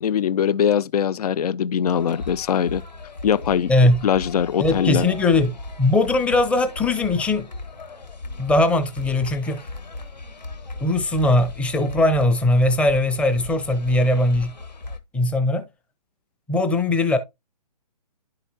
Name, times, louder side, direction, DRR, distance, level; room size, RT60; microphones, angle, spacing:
voice 1, 0.0-2.8 3.2-3.7 4.0-5.1, left 8 dB, 65° left, 0.4 m, -21 dB
sound 1, 1.9-15.0, left 3 dB, 85° left, 1.4 m, -37 dB
voice 2, 3.7-4.1 4.6-7.5 8.4-9.7 10.8-14.5 15.1-15.7 16.5-17.2, left 2 dB, 5° left, 0.7 m, -20 dB
11.0 x 4.9 x 2.8 m
figure-of-eight pair, 135°, 21 cm